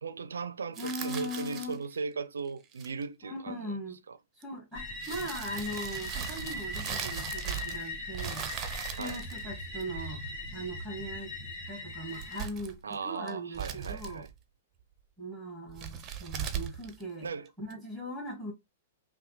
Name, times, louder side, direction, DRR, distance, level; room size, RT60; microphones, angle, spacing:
voice 1, 0.0-3.7 4.1-4.2 9.0-9.2 12.8-14.3 17.2-17.5, right 5 dB, 70° right, 0.5 m, -37 dB
sound 1, 0.7-1.9 2.6-3.0 4.4-4.5 5.0-7.9 8.1-10.1 12.0-12.9 13.3-14.3 15.7-17.7, right 8 dB, 25° right, 0.7 m, -39 dB
voice 2, 0.8-1.8 3.2-4.0 4.3-8.5 8.9-10.2 10.5-11.3 11.7-14.3 15.2-17.3 17.6-18.5, equal, 5° left, 1.9 m, -39 dB
sound 2, 4.7-12.4, left 2 dB, 45° left, 1.7 m, -40 dB
5.5 x 2.2 x 3.2 m
figure-of-eight pair, 105°, 0 cm